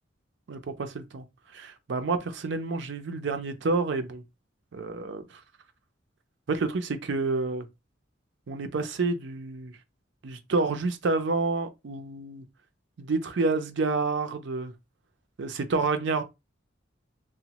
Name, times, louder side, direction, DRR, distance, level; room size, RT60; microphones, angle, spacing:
voice 1, 0.5-1.2 1.5-4.2 4.7-5.4 6.5-7.7 8.5-9.8 10.2-12.4 13.0-14.7 15.4-16.2, right 3 dB, 65° right, 0.5 m, -29 dB
2.9 x 2.1 x 2.8 m
head